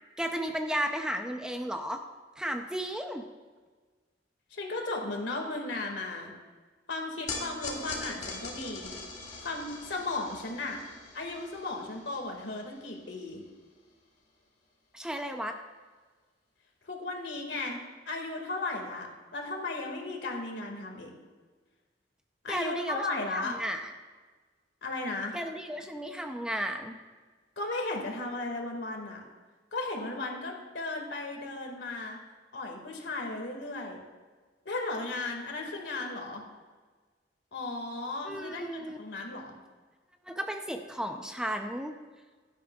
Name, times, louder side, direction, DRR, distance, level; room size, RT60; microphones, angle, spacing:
voice 1, 0.2-2.0 2.4-3.3 14.9-15.6 22.5-23.9 25.3-27.0 38.2-39.0 40.3-41.9, equal, 5° right, 4 dB, 0.6 m, -34 dB
voice 2, 4.5-6.3 6.9-9.0 9.4-10.8 11.1-13.4 16.8-21.1 22.4-23.6 24.8-25.3 27.6-29.2 29.7-32.2 32.5-34.0 34.7-36.4 37.5-39.5, left 2 dB, 75° left, 2 dB, 2.2 m, -35 dB
sound 1, 7.3-13.7, left 3 dB, 40° left, 2.3 m, -42 dB
16.5 x 12.0 x 2.4 m, 1.4 s
head